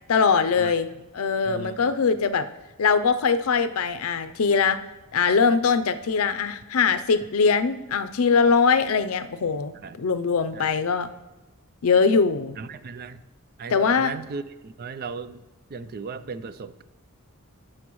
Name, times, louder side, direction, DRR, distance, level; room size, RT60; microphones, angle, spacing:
voice 1, 0.1-0.9 1.1-2.5 2.8-4.8 5.1-11.1 11.8-12.6 13.7-14.1, left 5 dB, 70° left, 11 dB, 0.5 m, -22 dB
voice 2, 1.4-2.2 9.8-10.0 10.5-10.7 12.6-13.2 13.6-15.4 15.7-16.8, right 4 dB, 45° right, 13 dB, 0.4 m, -37 dB
15.5 x 6.3 x 3.0 m, 1.1 s
head